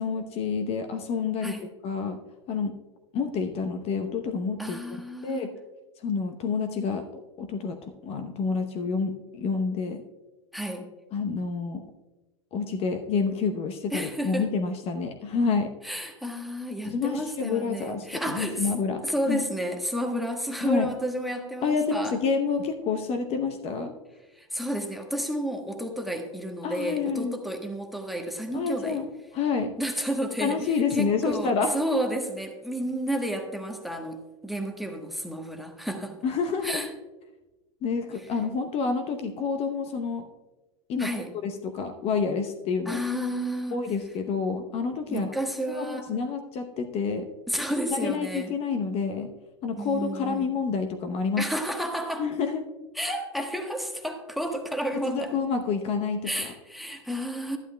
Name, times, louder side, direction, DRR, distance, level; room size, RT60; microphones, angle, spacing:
voice 1, 0.0-1.6 1.8-2.2 2.5-2.7 3.1-4.8 5.2-5.5 6.0-10.0 11.1-11.8 12.5-15.7 16.8-19.4 20.6-20.9 21.6-23.9 26.6-27.3 28.5-29.1 29.3-29.7 30.4-31.9 36.2-36.9 37.8-40.3 40.9-43.0 43.7-45.3 45.7-47.3 47.9-49.3 49.6-51.5 52.2-52.6 54.9-56.5, left 5 dB, 40° left, 7 dB, 0.8 m, -28 dB
voice 2, 4.6-5.5 10.5-10.9 13.9-14.5 15.8-18.7 19.0-22.2 24.3-29.0 29.8-30.6 30.9-36.1 36.6-36.9 41.0-41.3 42.9-43.8 45.1-46.1 47.5-48.5 49.8-50.5 51.4-52.3 53.0-55.3 56.2-57.6, equal, ahead, 4 dB, 1.2 m, -31 dB
12.5 x 11.0 x 2.2 m, 1.1 s
hypercardioid pair, 105°, 16 cm